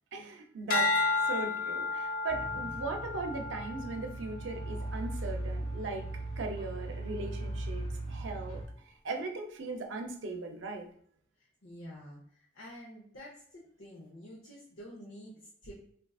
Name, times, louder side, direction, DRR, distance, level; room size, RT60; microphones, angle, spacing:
voice 1, 0.1-1.0 1.3-6.1 6.4-10.9, right 3 dB, 70° right, 3 dB, 0.6 m, -38 dB
sound 1, 0.7-5.1 5.7-6.1, left 3 dB, 50° left, 0.4 m, -33 dB
sound 2, 2.3-8.6, right 1 dB, 35° left, 1.1 m, -38 dB
voice 2, 2.4-2.9 11.4-15.7, equal, 85° left, -5 dB, 0.8 m, -49 dB
3.8 x 2.5 x 2.3 m, 0.62 s
head